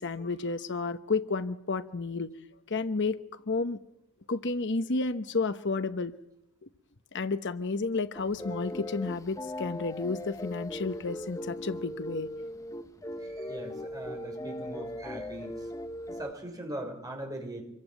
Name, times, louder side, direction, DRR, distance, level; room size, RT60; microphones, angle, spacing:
voice 1, 0.0-2.3 2.7-3.8 4.3-6.1 6.6-6.7 7.1-12.3, left 3 dB, 55° left, 11 dB, 1.0 m, -31 dB
sound 1, 8.1-16.3, left 1 dB, 15° left, 1.1 m, -39 dB
voice 2, 13.2-15.7 16.1-17.6, right 1 dB, 15° right, 3 dB, 6.1 m, -40 dB
26.5 x 22.5 x 9.1 m, 0.81 s
head